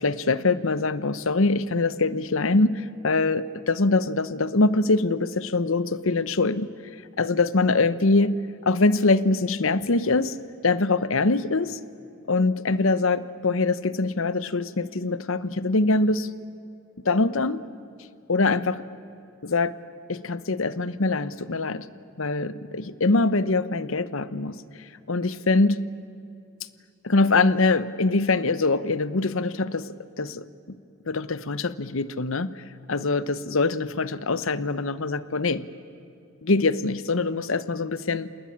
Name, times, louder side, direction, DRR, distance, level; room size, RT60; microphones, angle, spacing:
voice 1, 0.0-6.7 7.2-8.3 8.6-10.3 10.6-11.8 12.3-16.3 17.0-17.6 18.3-18.8 19.4-19.8 20.1-21.9 22.2-24.6 25.1-25.8 27.0-29.9 30.2-30.4 31.1-32.5 32.9-35.6 36.4-38.3, left 3 dB, 65° left, 16 dB, 0.9 m, -23 dB
28.5 x 20.0 x 8.7 m, 2.6 s
head